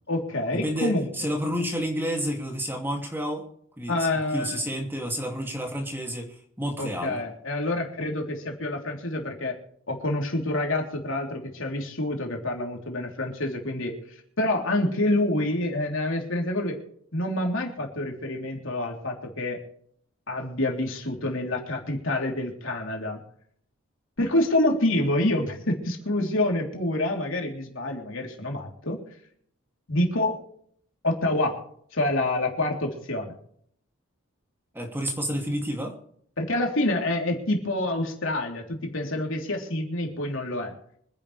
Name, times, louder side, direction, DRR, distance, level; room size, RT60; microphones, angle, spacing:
voice 1, 0.1-1.3 3.9-4.6 6.8-9.5 9.9-13.9 14.4-16.8 17.1-19.6 20.3-23.2 24.2-29.0 29.9-30.4 31.0-31.6 31.9-33.3 36.4-40.7, left 1 dB, 65° left, 1 dB, 3.4 m, -27 dB
voice 2, 0.6-3.5 3.8-7.2 34.7-36.0, equal, 10° right, 1 dB, 2.5 m, -30 dB
25.5 x 11.0 x 3.3 m, 0.64 s
head